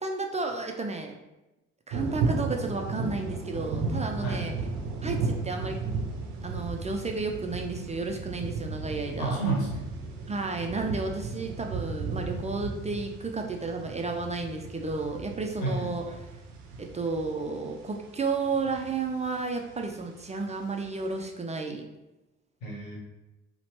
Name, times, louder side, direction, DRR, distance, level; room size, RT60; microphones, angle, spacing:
voice 1, 0.0-1.2 1.9-4.5 5.0-5.8 6.4-9.4 10.3-16.3 16.8-21.9, right 3 dB, 20° right, 3 dB, 0.4 m, -32 dB
sound 1, 1.9-21.2, right 4 dB, 80° right, 0.5 m, -35 dB
voice 2, 9.2-9.9 15.6-16.0 22.6-23.0, right 2 dB, 90° left, -4 dB, 0.9 m, -30 dB
2.8 x 2.1 x 2.9 m, 1.0 s
hypercardioid pair, 45°, 37 cm